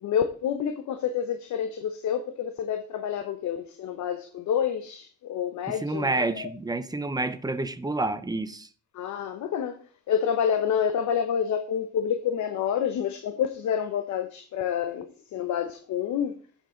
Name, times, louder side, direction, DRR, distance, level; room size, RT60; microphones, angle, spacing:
voice 1, 0.0-6.5 8.9-16.4, left 8 dB, 75° left, 0.9 m, -28 dB
voice 2, 5.7-8.7, right 2 dB, 15° right, 0.8 m, -29 dB
11.0 x 7.3 x 3.9 m
cardioid pair, 90°, 30 cm